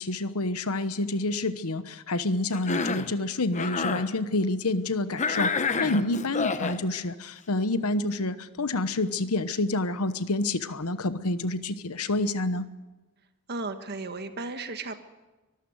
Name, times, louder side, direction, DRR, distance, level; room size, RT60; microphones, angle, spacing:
voice 1, 0.0-5.5 5.8-12.6, left 2 dB, 90° left, 12 dB, 1.1 m, -28 dB
Cough, 2.5-3.1 3.5-4.1 5.2-6.8, left 4 dB, 35° left, 1.0 m, -28 dB
voice 2, 13.5-15.0, right 3 dB, 50° right, 8 dB, 1.4 m, -35 dB
24.0 x 14.0 x 7.9 m, 1.1 s
head